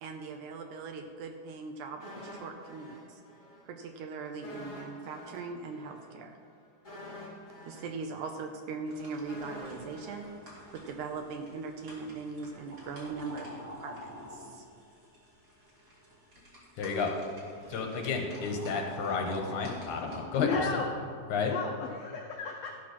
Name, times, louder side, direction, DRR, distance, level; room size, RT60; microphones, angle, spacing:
voice 1, 0.0-3.2 3.7-6.4 7.7-10.3 10.7-14.7, right 4 dB, 75° right, 5 dB, 1.9 m, -40 dB
sound 1, 2.0-3.6 3.9-4.0 4.4-11.5 11.8-11.9, left 1 dB, 20° left, 3.3 m, -48 dB
sound 2, 8.9-20.2, left 1 dB, 30° right, 2.2 m, -49 dB
voice 2, 16.8-17.1 17.7-20.5 21.3-21.5, left 5 dB, 70° left, 2 dB, 2.5 m, -31 dB
voice 3, 20.4-20.9 21.4-22.8, left 5 dB, 85° left, 2 dB, 1.4 m, -33 dB
14.0 x 6.1 x 5.9 m, 2.3 s
omnidirectional pair, 3.9 m